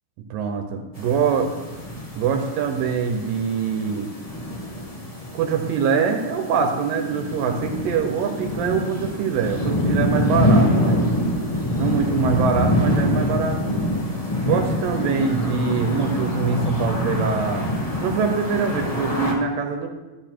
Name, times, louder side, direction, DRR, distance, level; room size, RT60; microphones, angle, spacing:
voice 1, 0.3-1.5 2.2-4.1 5.3-11.1 11.8-13.9 14.5-17.6 18.0-19.9, right 6 dB, 85° right, 4 dB, 2.6 m, -24 dB
sound 1, 1.0-19.3, left 1 dB, 20° left, 1.1 m, -25 dB
12.0 x 9.6 x 4.5 m, 1.2 s
omnidirectional pair, 3.9 m